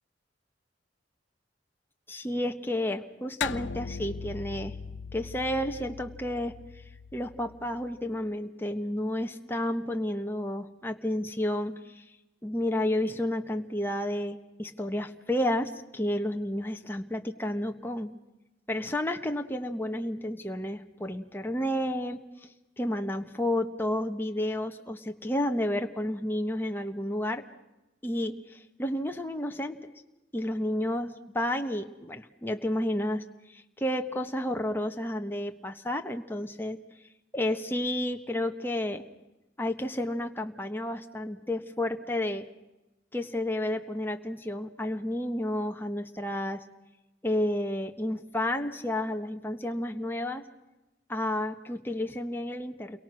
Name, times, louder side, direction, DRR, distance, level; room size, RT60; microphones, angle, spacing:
voice 1, 2.1-4.8 5.1-6.5 7.1-12.0 12.4-18.1 18.7-22.5 22.8-27.4 28.0-29.9 30.3-36.8 37.3-39.0 39.6-42.5 43.1-46.6 47.2-50.4 51.1-53.0, left 1 dB, 10° left, 4 dB, 1.2 m, -31 dB
sound 1, 3.4-8.1, left 6 dB, 75° left, 0.9 m, -39 dB
29.5 x 23.0 x 6.4 m, 0.99 s
head